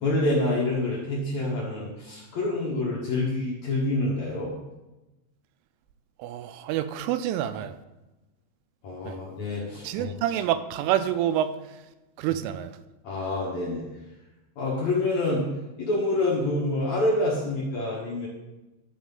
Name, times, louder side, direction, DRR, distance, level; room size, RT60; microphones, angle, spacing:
voice 1, 0.0-4.5 8.8-10.1 12.3-12.4 13.0-13.9 14.6-15.5 15.8-18.3, left 2 dB, 75° left, -5 dB, 1.7 m, -27 dB
voice 2, 6.2-7.7 9.1-9.2 9.8-11.5 12.2-12.7, right 11 dB, 85° right, 11 dB, 3.0 m, -27 dB
12.0 x 4.2 x 5.4 m, 1.0 s
omnidirectional pair, 5.6 m